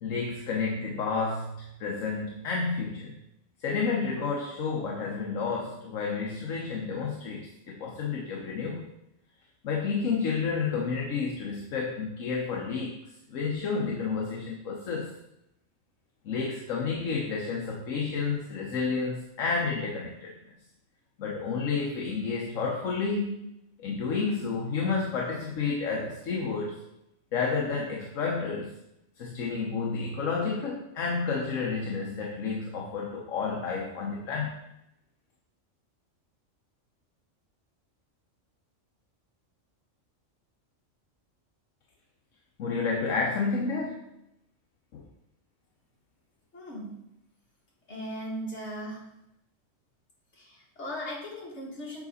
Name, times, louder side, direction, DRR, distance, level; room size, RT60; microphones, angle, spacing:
voice 1, 0.0-3.2 3.6-8.9 9.6-13.0 13.3-15.2 16.2-20.4 21.2-23.5 23.8-26.8 27.3-28.8 29.2-34.6 42.6-44.1 44.9-45.1, left 4 dB, 80° left, -1 dB, 1.3 m, -30 dB
voice 2, 46.5-47.0 47.9-49.0 50.3-52.0, equal, 60° left, -5 dB, 2.4 m, -38 dB
7.6 x 4.9 x 4.1 m, 0.84 s
omnidirectional pair, 1.3 m